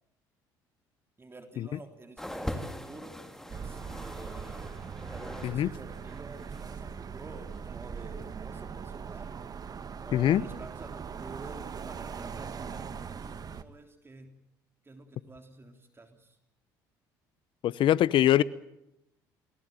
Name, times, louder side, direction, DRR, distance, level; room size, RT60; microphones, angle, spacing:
voice 1, 1.2-4.7 5.1-9.4 10.0-14.4 14.8-16.4, right 2 dB, 25° right, 3.4 m, -49 dB
sound 1, 2.2-5.6 5.9-6.8 7.5-7.6, equal, 5° left, 3.3 m, -41 dB
sound 2, 3.5-13.6, right 6 dB, 40° right, 1.6 m, -41 dB
voice 2, 10.1-10.4 17.6-18.4, left 12 dB, 55° left, 0.9 m, -23 dB
27.5 x 18.0 x 9.1 m
hypercardioid pair, 65°, 10 cm